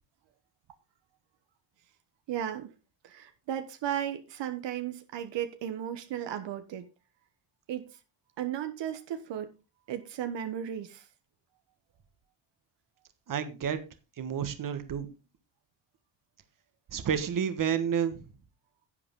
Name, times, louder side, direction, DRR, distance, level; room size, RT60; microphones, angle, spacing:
voice 1, 2.3-2.7 3.0-6.8 7.7-7.9 8.4-9.5 9.9-11.0, right 10 dB, 75° right, 1.2 m, -35 dB
voice 2, 13.3-13.8 14.2-15.1 16.9-18.2, right 8 dB, 45° right, 1.5 m, -30 dB
11.5 x 7.9 x 3.7 m
cardioid pair, 115°, 43 cm